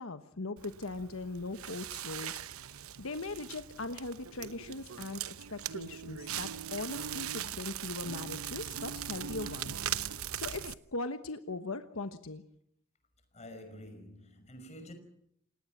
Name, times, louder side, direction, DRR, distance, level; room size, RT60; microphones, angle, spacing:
voice 1, 0.0-2.4 2.7-5.2 5.5-12.4, left 3 dB, 80° left, 1.3 m, -40 dB
Crackle, 0.6-10.7, right 9 dB, 85° right, 0.9 m, -40 dB
voice 2, 13.3-14.9, left 1 dB, 30° left, 5.6 m, -48 dB
28.5 x 18.0 x 7.4 m
head